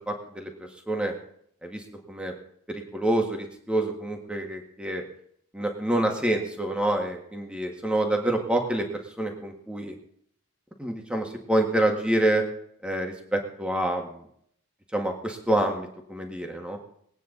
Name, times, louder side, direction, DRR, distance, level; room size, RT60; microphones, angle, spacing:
voice 1, 0.1-0.5 0.9-1.1 1.6-2.3 2.7-5.0 5.5-8.9 9.2-9.9 10.8-12.4 12.8-14.2 14.9-16.8, right 1 dB, 5° right, 2 dB, 1.7 m, -27 dB
21.0 x 9.2 x 4.0 m, 0.68 s
head